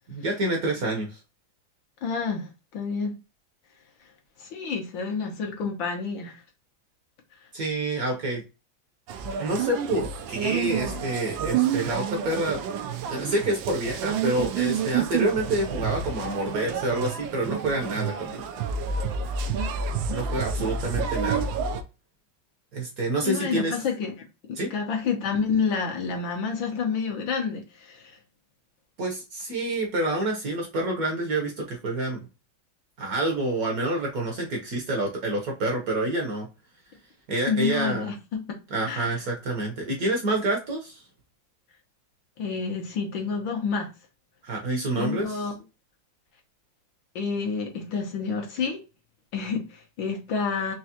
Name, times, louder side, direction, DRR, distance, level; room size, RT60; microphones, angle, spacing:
voice 1, 0.1-1.1 7.5-8.4 9.4-12.6 13.1-18.5 20.1-21.5 22.7-23.7 24.6-24.7 29.0-32.3 33.0-36.5 37.3-38.1 38.7-41.0 44.4-45.4, right 1 dB, 55° right, 1.2 m, -28 dB
voice 2, 2.0-3.2 4.4-6.4 23.2-24.1 24.5-28.2 37.5-38.4 38.8-39.2 42.4-43.9 44.9-45.5 47.1-48.8 49.3-50.7, left 5 dB, 70° left, 1.8 m, -29 dB
sound 1, 9.1-21.8, right 7 dB, 75° right, 1.3 m, -29 dB
4.7 x 3.0 x 2.9 m
omnidirectional pair, 2.2 m